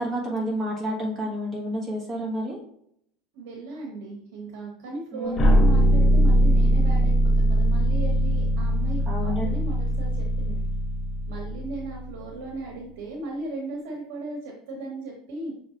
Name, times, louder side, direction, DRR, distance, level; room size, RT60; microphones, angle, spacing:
voice 1, 0.0-2.6 5.1-5.6 9.1-9.6, equal, 15° right, -4 dB, 1.3 m, -29 dB
voice 2, 3.3-10.6 11.3-15.5, right 2 dB, 75° right, 0 dB, 1.0 m, -36 dB
sound 1, 5.4-12.3, equal, 25° left, 0.5 m, -21 dB
6.0 x 3.4 x 2.5 m, 0.71 s
supercardioid pair, 170°, 0 cm